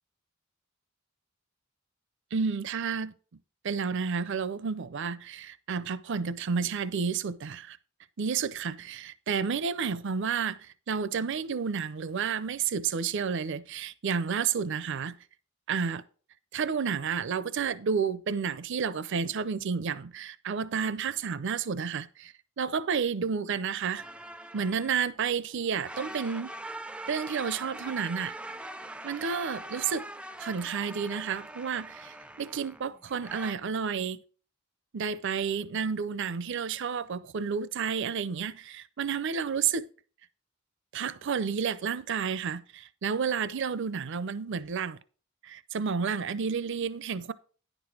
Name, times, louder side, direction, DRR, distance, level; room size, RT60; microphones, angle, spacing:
voice 1, 2.3-3.1 3.6-7.8 8.2-15.1 15.7-16.0 16.5-24.0 24.5-26.5 27.1-28.3 29.0-30.1 30.4-34.2 34.9-39.9 40.9-45.0 45.4-47.3, right 6 dB, 60° right, 0.5 m, -31 dB
sound 1, 24.0-25.3 25.6-33.5, right 1 dB, 5° right, 0.3 m, -42 dB
10.0 x 6.1 x 4.7 m
head